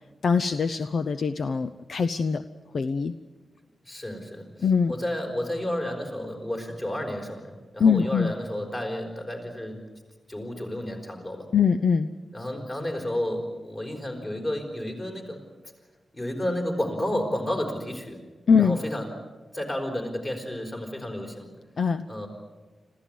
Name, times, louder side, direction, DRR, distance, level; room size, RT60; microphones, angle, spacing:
voice 1, 0.2-2.4 2.7-3.1 4.6-5.0 7.8-8.3 11.5-12.1 18.5-18.8 21.8-22.0, left 6 dB, 55° left, 11 dB, 0.7 m, -22 dB
voice 2, 3.8-4.5 4.9-9.8 10.3-11.5 12.3-15.4 16.1-18.2 18.5-19.1 19.5-21.5 22.1-22.3, left 1 dB, 25° left, 3 dB, 4.8 m, -31 dB
26.0 x 15.5 x 9.4 m, 1.3 s
wide cardioid pair, 135°, 0 cm